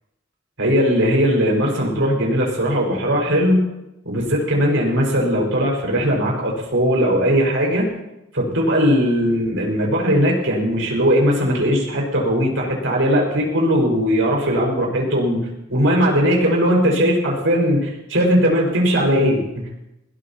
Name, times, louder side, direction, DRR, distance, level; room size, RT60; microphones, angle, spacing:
voice 1, 0.6-3.7 4.1-7.9 8.3-15.4 15.7-19.7, equal, 75° right, -1 dB, 5.5 m, -19 dB
21.0 x 17.5 x 3.0 m, 0.90 s
head